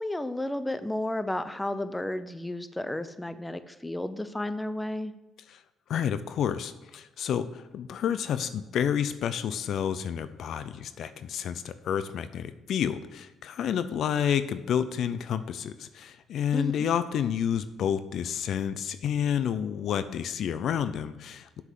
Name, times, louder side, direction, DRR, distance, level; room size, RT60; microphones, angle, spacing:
voice 1, 0.0-5.1 16.5-16.9, left 1 dB, 10° left, 12 dB, 0.7 m, -32 dB
voice 2, 5.9-21.6, left 8 dB, 70° left, 13 dB, 0.6 m, -30 dB
7.2 x 6.8 x 7.5 m, 1.0 s
cardioid pair, 80°, 0 cm